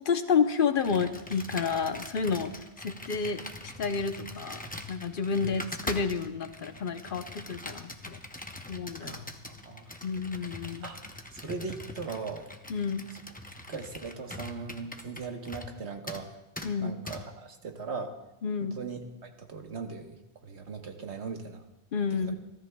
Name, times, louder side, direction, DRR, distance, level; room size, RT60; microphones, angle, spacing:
voice 1, 0.0-3.4 3.8-8.2 8.7-9.2 10.0-10.9 12.7-13.1 16.6-17.0 18.4-18.8 21.9-22.3, left 5 dB, 55° left, 8 dB, 0.9 m, -30 dB
Computer keyboard, 0.8-15.8 16.1-16.2 16.6-16.7 17.1-17.2, left 1 dB, 10° left, 0.7 m, -42 dB
voice 2, 9.0-9.9 10.8-11.0 11.3-12.5 13.7-16.3 16.8-18.2 18.6-21.6, right 4 dB, 75° right, 4 dB, 1.5 m, -39 dB
28.5 x 13.5 x 2.3 m, 0.94 s
omnidirectional pair, 1.1 m